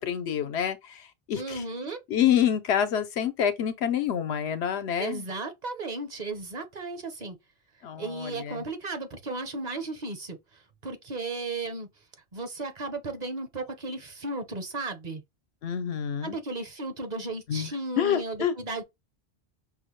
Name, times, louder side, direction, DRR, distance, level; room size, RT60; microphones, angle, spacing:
voice 1, 0.0-1.6 2.1-5.2 7.8-8.7 15.6-16.4 17.5-17.7 18.0-18.5, left 9 dB, 85° left, 0.9 m, -27 dB
voice 2, 1.3-2.0 5.0-7.4 8.0-11.9 12.3-15.2 16.2-18.8, right 3 dB, 45° right, 0.8 m, -35 dB
5.4 x 2.1 x 3.0 m
omnidirectional pair, 1.1 m